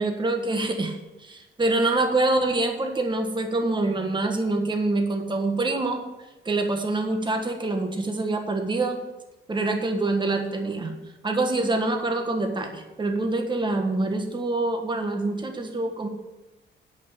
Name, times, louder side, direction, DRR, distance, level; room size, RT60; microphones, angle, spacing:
voice 1, 0.0-6.0 6.4-9.0 9.5-11.0 11.2-16.1, right 2 dB, 25° right, 4 dB, 1.5 m, -25 dB
9.7 x 5.9 x 8.3 m, 1.1 s
cardioid pair, 90°, 20 cm